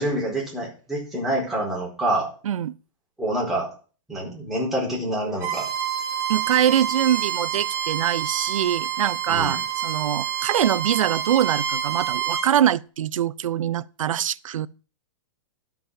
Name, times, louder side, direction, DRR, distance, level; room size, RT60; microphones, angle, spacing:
voice 1, 0.0-2.3 3.2-3.7 4.1-5.7 9.3-9.6, right 1 dB, ahead, 4.6 m, -26 dB
voice 2, 2.4-2.7 6.3-14.7, right 10 dB, 85° right, 0.6 m, -23 dB
Bowed string instrument, 5.4-12.5, right 9 dB, 15° right, 1.9 m, -28 dB
12.0 x 5.9 x 7.2 m
hypercardioid pair, 155°, 17 cm